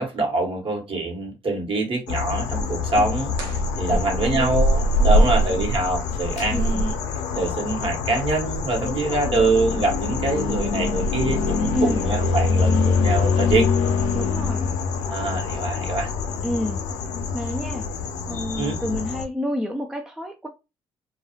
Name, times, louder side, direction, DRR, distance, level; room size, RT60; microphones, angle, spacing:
voice 1, 0.0-6.9 7.3-13.7 15.1-16.1 18.5-18.7, right 2 dB, 45° right, 1.1 m, -25 dB
sound 1, 2.1-19.2, left 3 dB, 75° left, 0.5 m, -24 dB
sound 2, 3.3-4.5, right 3 dB, 85° right, 0.6 m, -42 dB
voice 2, 3.9-4.6 5.0-5.4 6.5-6.9 8.8-9.4 11.7-12.1 14.1-14.7 15.8-15.9 16.4-16.8 17.3-17.9 18.3-20.5, left 1 dB, 5° right, 0.4 m, -29 dB
2.3 x 2.3 x 2.9 m
hypercardioid pair, 50°, 12 cm